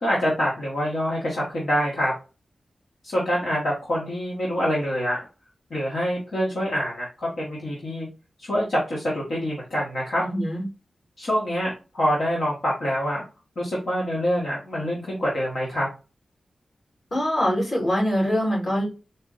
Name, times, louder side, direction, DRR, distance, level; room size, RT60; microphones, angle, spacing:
voice 1, 0.0-2.1 3.0-5.2 5.7-8.1 8.4-10.2 11.2-13.3 13.6-15.9, equal, 65° left, -5 dB, 1.1 m, -25 dB
voice 2, 10.2-10.6 17.1-18.9, equal, 45° left, -3 dB, 2.2 m, -23 dB
4.1 x 2.1 x 3.8 m, 0.31 s
wide cardioid pair, 160°, 0 cm